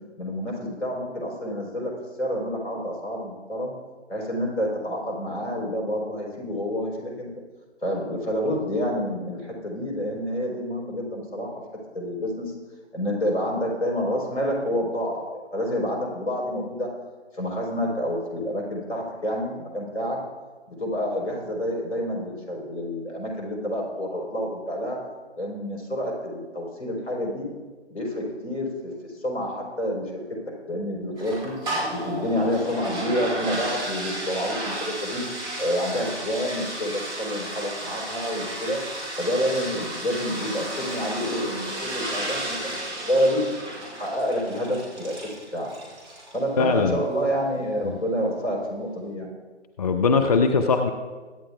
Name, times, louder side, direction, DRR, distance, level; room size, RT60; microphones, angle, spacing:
voice 1, 0.2-1.9 2.2-3.7 4.1-7.3 7.8-11.5 11.9-12.5 12.9-16.9 17.3-20.2 20.7-25.0 25.4-27.5 27.9-30.1 30.7-31.5 31.9-35.2 35.6-38.8 39.2-42.6 43.0-43.4 43.7-45.7 46.3-49.3, equal, 75° left, -2 dB, 4.1 m, -28 dB
sound 1, 31.2-46.4, right 1 dB, 15° right, 2.4 m, -33 dB
voice 2, 46.6-47.0 47.8-48.0 49.8-50.9, left 4 dB, 35° left, 6 dB, 0.6 m, -21 dB
22.0 x 9.7 x 2.3 m, 1.4 s
figure-of-eight pair, 140°, 34 cm